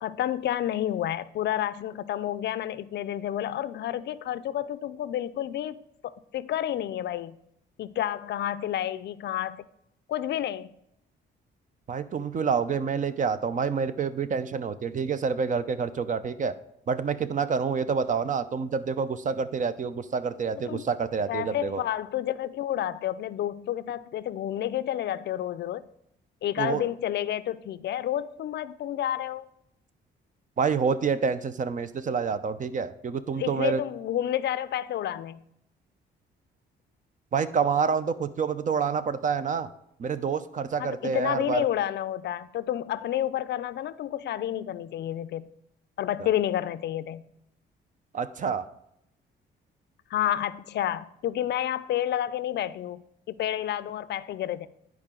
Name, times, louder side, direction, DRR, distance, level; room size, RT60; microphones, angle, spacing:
voice 1, 0.0-7.4 7.8-9.7 10.1-10.7 20.7-20.9 21.3-25.8 26.4-29.5 33.4-35.4 40.8-45.5 46.0-47.2 50.1-53.0 53.3-54.7, left 11 dB, 60° left, 0.4 m, -30 dB
voice 2, 11.9-16.5 16.9-21.8 26.6-26.9 30.6-33.8 37.3-39.7 40.0-41.6 48.1-48.6, right 6 dB, 40° right, 0.5 m, -28 dB
10.5 x 4.7 x 3.7 m
cardioid pair, 90°, 20 cm